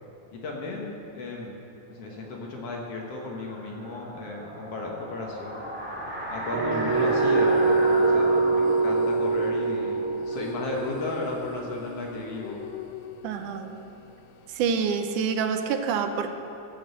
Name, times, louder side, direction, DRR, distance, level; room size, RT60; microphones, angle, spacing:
voice 1, 0.3-1.5 1.9-5.6 6.3-10.0 10.3-12.6, left 2 dB, 60° left, -1 dB, 2.2 m, -34 dB
sound 1, 2.3-11.1, equal, 10° right, 0.4 m, -37 dB
sound 2, 6.5-12.4, right 4 dB, 65° right, 1.5 m, -24 dB
sound 3, 6.7-14.9, left 9 dB, 85° left, 2.1 m, -41 dB
voice 2, 13.2-13.8 14.5-16.3, right 6 dB, 85° right, 7 dB, 2.2 m, -27 dB
14.0 x 6.2 x 7.7 m, 2.9 s
omnidirectional pair, 3.5 m